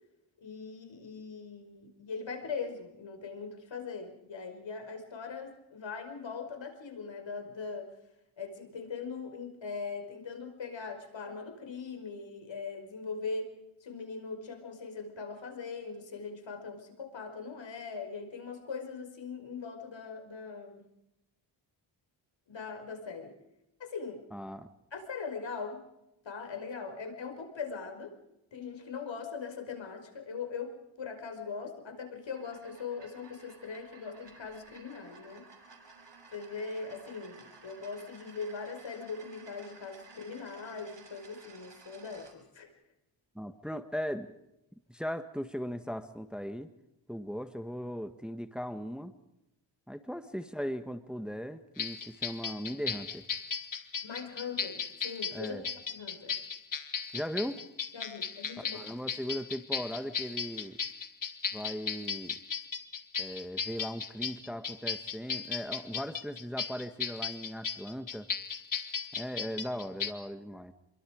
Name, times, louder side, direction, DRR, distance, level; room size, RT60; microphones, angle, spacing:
voice 1, 0.4-8.0 8.4-20.9 22.5-23.4 23.8-24.3 24.9-25.8 26.2-28.2 28.5-35.5 36.3-42.7 54.0-56.4 57.9-58.8, left 5 dB, 65° left, 5 dB, 5.3 m, -41 dB
voice 2, 24.3-24.7 43.3-44.3 44.9-46.7 47.1-49.1 49.9-53.3 55.3-55.6 57.1-57.6 58.7-60.8 61.5-62.4 63.2-68.3 69.1-70.7, equal, ahead, 9 dB, 1.5 m, -38 dB
sound 1, 32.2-42.4, right 4 dB, 60° right, 6.1 m, -55 dB
sound 2, 51.8-70.1, left 6 dB, 40° left, 1.8 m, -36 dB
28.0 x 23.5 x 5.1 m, 0.90 s
cardioid pair, 70°, 48 cm